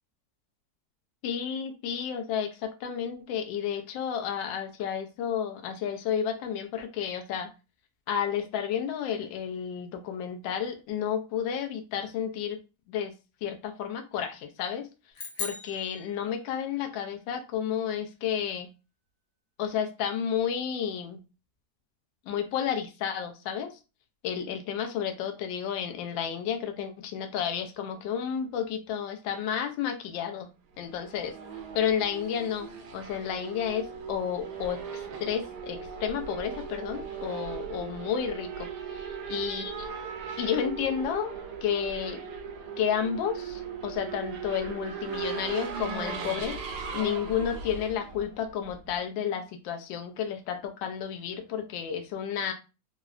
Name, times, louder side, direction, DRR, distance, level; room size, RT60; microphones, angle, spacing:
voice 1, 1.2-7.5 8.1-12.6 12.9-13.1 13.4-14.9 15.4-18.7 19.6-21.2 22.3-23.7 24.2-30.5 30.8-31.3 31.7-32.7 32.9-38.7 39.3-39.9 40.4-41.3 41.6-42.2 42.8-46.6 46.9-52.5, left 8 dB, 85° left, 1.3 m, -31 dB
sound 1, 15.1-16.8, left 4 dB, 55° left, 0.9 m, -39 dB
Race car auto racing / Accelerating revving vroom, 30.8-48.9, right 6 dB, 70° right, 1.1 m, -38 dB
3.7 x 2.1 x 2.4 m
omnidirectional pair, 2.0 m